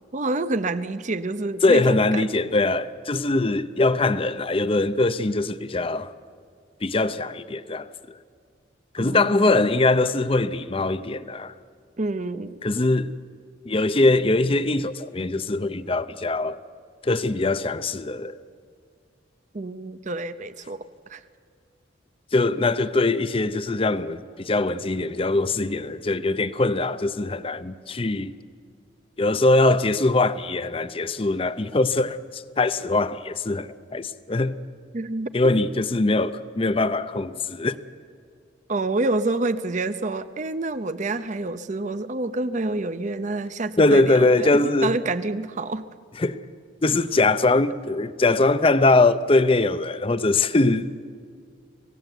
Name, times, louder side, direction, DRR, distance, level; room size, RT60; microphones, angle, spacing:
voice 1, 0.1-2.2 9.0-9.7 12.0-12.6 19.5-21.2 34.9-35.3 38.7-45.8, right 2 dB, 40° right, 0.6 m, -28 dB
voice 2, 1.6-6.1 6.8-7.9 8.9-11.5 12.6-13.1 13.6-16.6 17.0-18.4 22.3-28.3 29.2-34.6 35.3-37.8 43.8-44.9 46.2-46.4 46.8-51.0, left 2 dB, 30° left, 0.6 m, -22 dB
25.5 x 17.0 x 8.0 m
head